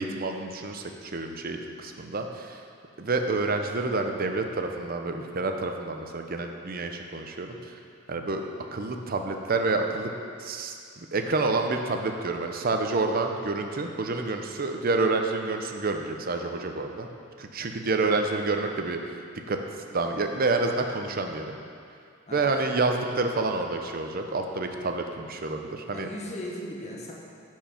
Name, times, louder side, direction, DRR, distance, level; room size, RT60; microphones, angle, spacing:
voice 1, 0.0-2.6 3.0-7.7 8.1-10.1 10.4-17.1 17.4-19.0 19.5-19.6 19.9-21.6 22.3-26.1, right 3 dB, 45° right, 4 dB, 0.7 m, -28 dB
voice 2, 25.9-27.1, left 1 dB, 35° left, -3 dB, 1.3 m, -38 dB
10.5 x 4.6 x 5.8 m, 2.3 s
head